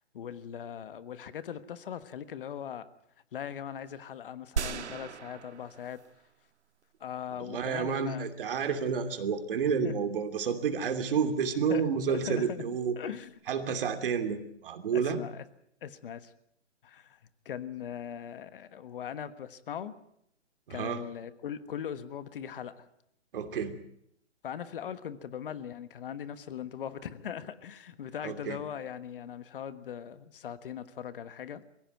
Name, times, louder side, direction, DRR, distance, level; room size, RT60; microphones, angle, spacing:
voice 1, 0.1-2.9 3.3-6.0 7.0-8.3 9.8-10.0 11.7-13.4 14.9-15.4 15.8-16.3 16.8-17.2 17.4-20.0 20.7-22.9 24.4-31.6, left 9 dB, 50° left, 13 dB, 1.4 m, -40 dB
sound 1, 4.6-6.3 6.8-6.9, right 7 dB, 70° right, 1.6 m, -36 dB
voice 2, 7.4-12.9 13.5-15.2 20.7-21.0 23.3-23.8 28.2-28.6, right 6 dB, 50° right, 7 dB, 2.9 m, -30 dB
23.5 x 16.5 x 9.2 m, 0.74 s
hypercardioid pair, 160°, 35 cm